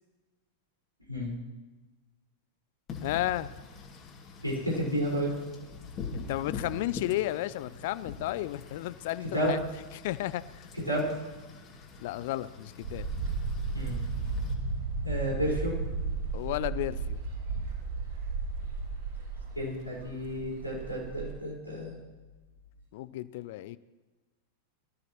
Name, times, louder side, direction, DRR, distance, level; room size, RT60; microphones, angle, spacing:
Wind / Rain, 2.9-14.5, left 4 dB, 30° left, 2.4 m, -44 dB
voice 1, 3.0-3.5 6.3-9.6 9.9-10.6 12.0-13.1 16.3-17.2 22.9-23.8, left 15 dB, 50° left, 17 dB, 0.5 m, -33 dB
voice 2, 4.4-5.4 9.3-9.5 10.7-11.1 13.7-14.0 15.0-15.8 19.5-22.0, equal, 90° right, -5 dB, 4.8 m, -31 dB
sound 1, 12.8-21.3, right 4 dB, 60° right, 5.8 m, -34 dB
22.5 x 13.5 x 3.1 m, 1.2 s
figure-of-eight pair, 90°, 0 cm